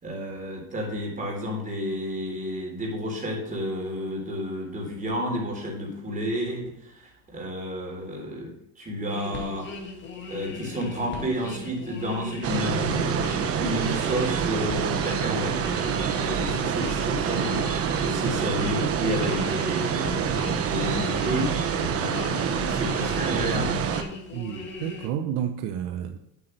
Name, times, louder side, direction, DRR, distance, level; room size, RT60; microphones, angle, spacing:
voice 1, 0.0-9.7 10.3-15.6 16.1-17.7 18.0-21.5 21.9-23.8, equal, 25° right, 0 dB, 3.8 m, -31 dB
sound 1, 9.1-25.1, left 4 dB, 35° left, 2.3 m, -38 dB
sound 2, 12.4-24.0, right 7 dB, 45° right, 1.2 m, -27 dB
voice 2, 24.3-26.2, right 9 dB, 70° right, 7 dB, 0.9 m, -31 dB
8.5 x 8.5 x 3.3 m, 0.82 s
supercardioid pair, 110°, 33 cm